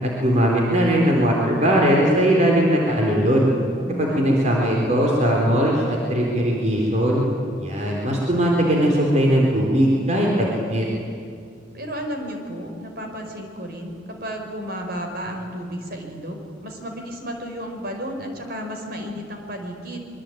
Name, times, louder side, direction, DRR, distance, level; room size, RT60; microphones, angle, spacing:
voice 1, 0.0-3.5 4.0-7.2 7.6-10.9, equal, 40° right, -1 dB, 3.9 m, -19 dB
voice 2, 3.9-4.4 11.7-20.1, equal, 55° right, 3 dB, 4.9 m, -33 dB
25.0 x 23.5 x 9.2 m, 2.3 s
head